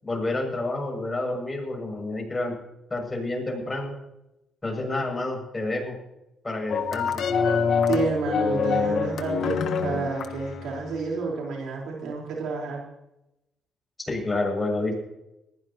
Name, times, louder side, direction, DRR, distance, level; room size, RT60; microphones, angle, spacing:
voice 1, 0.0-2.5 2.9-3.9 4.6-6.0 6.4-7.2 14.0-15.0, left 2 dB, 20° left, 1 dB, 7.0 m, -29 dB
sound 1, 6.7-11.1, left 6 dB, 70° left, 1.4 m, -26 dB
voice 2, 7.9-12.8, right 4 dB, 80° right, -1 dB, 4.2 m, -29 dB
20.5 x 15.5 x 3.0 m, 0.88 s
cardioid pair, 90°, 0 cm